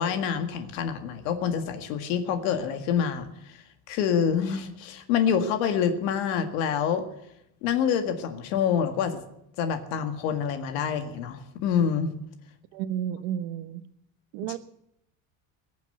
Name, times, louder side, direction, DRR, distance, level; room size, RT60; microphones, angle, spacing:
voice 1, 0.0-7.0 7.6-9.2 9.6-12.1, left 7 dB, 85° left, 1.9 m, -27 dB
voice 2, 12.7-13.8 14.3-14.6, right 10 dB, 75° right, 1.2 m, -31 dB
20.5 x 7.3 x 9.3 m
cardioid pair, 150°, 39 cm